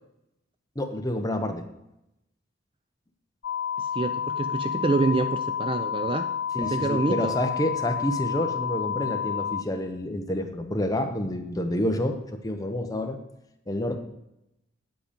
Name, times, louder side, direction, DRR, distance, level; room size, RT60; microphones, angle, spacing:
voice 1, 0.8-1.7 6.5-13.2 13.7-14.0, left 1 dB, 20° left, 5 dB, 0.8 m, -28 dB
sound 1, 3.4-9.6, left 8 dB, 60° left, 0.4 m, -30 dB
voice 2, 3.8-6.3 6.6-7.3, right 3 dB, 25° right, 9 dB, 0.4 m, -27 dB
8.5 x 8.0 x 5.0 m, 0.87 s
head